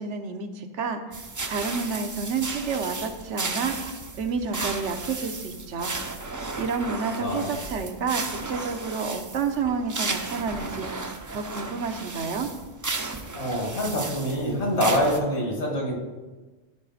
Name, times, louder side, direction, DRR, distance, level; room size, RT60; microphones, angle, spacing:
voice 1, 0.0-3.8 4.2-5.9 6.6-10.9 11.3-12.5, right 5 dB, 85° right, 6 dB, 1.1 m, -30 dB
sound 1, 1.1-15.2, right 3 dB, 35° right, 0.3 m, -34 dB
voice 2, 7.1-7.5 13.3-16.0, equal, 70° left, -1 dB, 2.2 m, -25 dB
12.0 x 5.0 x 4.1 m, 1.2 s
omnidirectional pair, 1.2 m